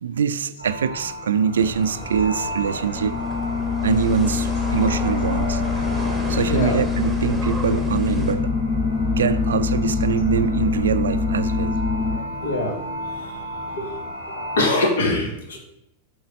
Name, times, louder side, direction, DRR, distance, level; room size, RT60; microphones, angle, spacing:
voice 1, 0.0-3.2 3.8-5.6 6.3-8.5 9.2-11.8, right 7 dB, 65° right, 14 dB, 0.3 m, -23 dB
sound 1, 0.6-14.6, equal, 80° left, 2.3 m, -33 dB
sound 2, 1.6-8.3, equal, ahead, 1.4 m, -34 dB
sound 3, 2.9-12.2, left 5 dB, 20° left, 0.5 m, -24 dB
voice 2, 6.4-6.8 8.9-9.7 11.9-12.8 13.1-13.3 13.7-13.9 14.6-15.6, left 2 dB, 60° left, 2 dB, 1.6 m, -25 dB
7.9 x 3.8 x 5.2 m, 0.81 s
figure-of-eight pair, 90°, 0 cm